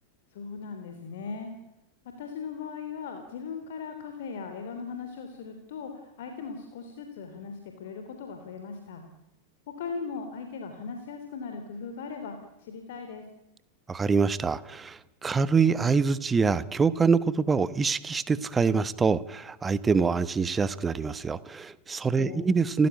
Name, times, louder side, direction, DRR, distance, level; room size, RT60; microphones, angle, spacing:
voice 1, 0.3-1.5 2.0-9.0 9.7-13.2 22.2-22.5, left 5 dB, 55° left, 5 dB, 3.4 m, -38 dB
voice 2, 13.9-22.9, right 5 dB, 15° right, 17 dB, 1.2 m, -25 dB
29.5 x 15.5 x 8.5 m, 0.94 s
figure-of-eight pair, 90°, 0 cm